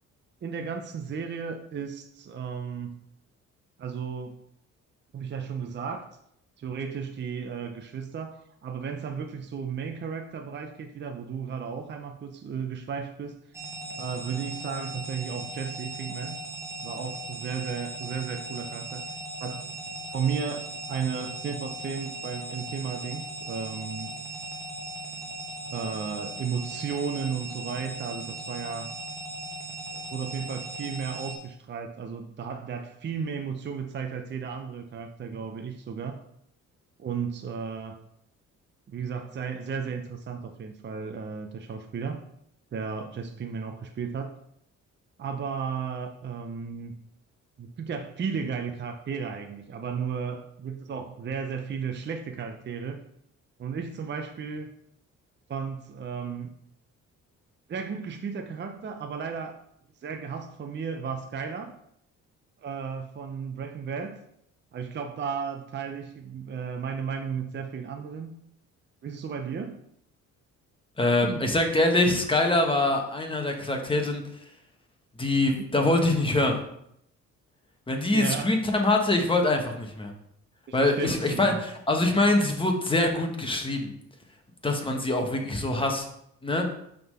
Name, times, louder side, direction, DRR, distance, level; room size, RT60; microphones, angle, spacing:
voice 1, 0.4-3.0 3.8-4.4 5.1-6.0 6.6-13.4 14.0-16.4 16.8-19.0 19.4-19.7 20.1-24.1 25.7-28.9 29.9-36.2 37.0-38.0 38.9-42.2 42.7-44.3 45.2-47.0 47.6-53.0 53.6-54.7 55.5-56.5 57.7-59.6 60.0-61.7 62.6-64.2 64.7-68.3 69.0-69.8 71.2-71.4 78.1-78.5 80.8-81.6, right 6 dB, 35° right, 5 dB, 0.6 m, -34 dB
sound 1, 13.5-31.4, right 1 dB, 10° right, 1.3 m, -38 dB
voice 2, 71.0-74.2 75.2-76.6 77.9-80.1 80.7-83.9 84.6-86.1 86.4-86.7, left 2 dB, 15° left, 3 dB, 1.2 m, -24 dB
5.7 x 3.8 x 5.5 m, 0.74 s
cardioid pair, 90°, 30 cm